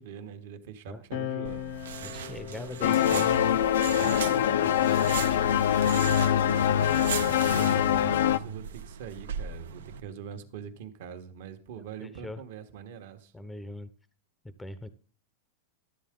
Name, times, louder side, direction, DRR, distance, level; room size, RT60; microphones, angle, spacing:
voice 1, 0.0-1.7 5.9-13.3, right 8 dB, 65° right, 7 dB, 1.3 m, -43 dB
sound 1, 1.1-8.0 9.0-10.8, left 12 dB, 55° left, 0.7 m, -43 dB
sound 2, 1.4-10.0, right 8 dB, 90° right, 0.6 m, -38 dB
voice 2, 2.0-3.6 12.0-12.4 13.3-13.9 14.6-14.9, left 2 dB, 5° left, 12 dB, 0.6 m, -41 dB
sound 3, 2.8-8.4, left 10 dB, 90° left, 0.5 m, -24 dB
12.5 x 7.7 x 3.7 m, 0.43 s
supercardioid pair, 145°, 0 cm